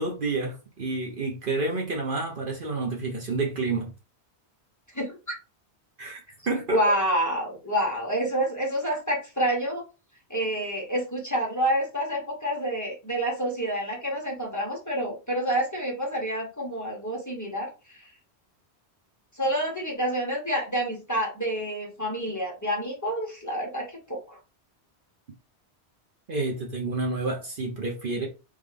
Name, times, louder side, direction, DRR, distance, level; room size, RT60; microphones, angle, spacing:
voice 1, 0.0-3.9 6.0-6.8 26.3-28.3, right 3 dB, 55° right, 1.0 m, -29 dB
voice 2, 4.9-5.4 6.7-9.8 10.3-18.0 19.4-24.4, right 1 dB, 15° left, 1.3 m, -28 dB
3.6 x 3.1 x 3.4 m
omnidirectional pair, 1.1 m